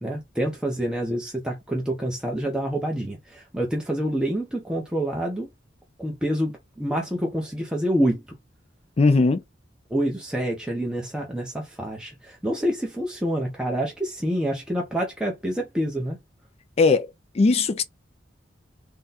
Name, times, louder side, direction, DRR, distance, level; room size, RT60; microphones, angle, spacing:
voice 1, 0.0-5.5 6.0-8.2 9.9-16.2, equal, 5° right, 0.7 m, -27 dB
voice 2, 9.0-9.4 16.8-17.1 17.3-17.8, left 3 dB, 35° left, 0.4 m, -18 dB
3.6 x 2.2 x 4.1 m
head